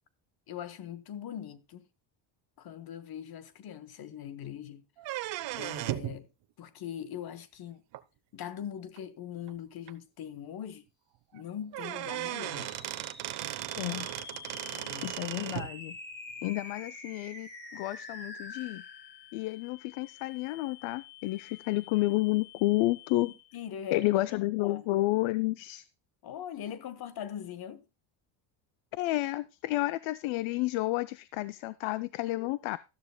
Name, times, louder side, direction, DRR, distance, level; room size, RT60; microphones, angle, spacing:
voice 1, 0.5-1.9 2.6-4.8 5.6-6.3 6.6-7.8 8.3-10.8 11.3-12.7 14.7-15.1 23.2-24.3 24.6-24.9 26.2-27.8, left 9 dB, 50° left, 1.0 m, -41 dB
sound 1, 5.0-6.2 7.9-8.0 9.0-9.1 9.5-9.6 9.9-10.0 11.3-11.4 11.7-15.7, right 16 dB, 65° right, 0.8 m, -36 dB
sound 2, 12.2-23.7, left 3 dB, 20° left, 1.6 m, -47 dB
voice 2, 13.8-14.1 15.0-16.0 16.4-18.8 19.3-23.3 23.9-25.8 28.9-32.8, left 18 dB, 85° left, 0.6 m, -30 dB
13.0 x 12.5 x 2.2 m
cardioid pair, 125°, 47 cm